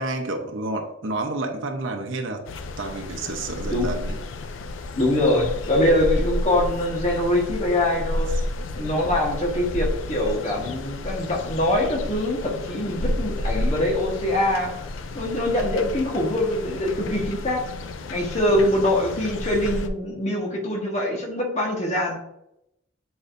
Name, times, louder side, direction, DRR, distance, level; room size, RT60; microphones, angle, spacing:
voice 1, 0.0-2.4 2.8-4.2 8.4-8.5, right 2 dB, 85° right, 3 dB, 0.9 m, -30 dB
sound 1, 2.4-19.9, left 1 dB, 85° left, 0.5 m, -31 dB
voice 2, 5.0-8.3 8.8-14.7 15.1-17.6 18.1-22.2, left 1 dB, 35° left, -1 dB, 1.4 m, -23 dB
8.4 x 4.7 x 2.6 m, 0.81 s
head